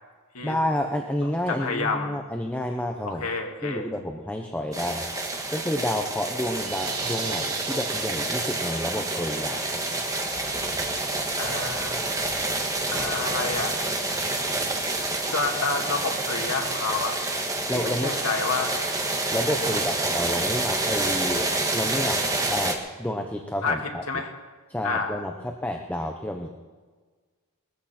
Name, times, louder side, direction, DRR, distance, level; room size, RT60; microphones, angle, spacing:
voice 1, 0.4-3.3 3.6-5.1 5.5-9.8 17.7-18.1 19.3-22.2 22.5-24.0 24.7-26.5, left 1 dB, 5° left, 3 dB, 0.9 m, -30 dB
voice 2, 1.5-2.2 3.0-3.9 11.4-12.0 12.9-13.9 15.2-17.2 17.7-18.7 19.6-19.8 23.6-23.8 24.1-24.3 24.8-25.2, left 4 dB, 85° left, 2 dB, 2.1 m, -29 dB
sound 1, 4.7-22.7, right 2 dB, 15° right, 1.6 m, -28 dB
sound 2, 6.5-9.1, right 5 dB, 90° right, 3.6 m, -36 dB
20.5 x 14.5 x 4.4 m, 1.4 s
head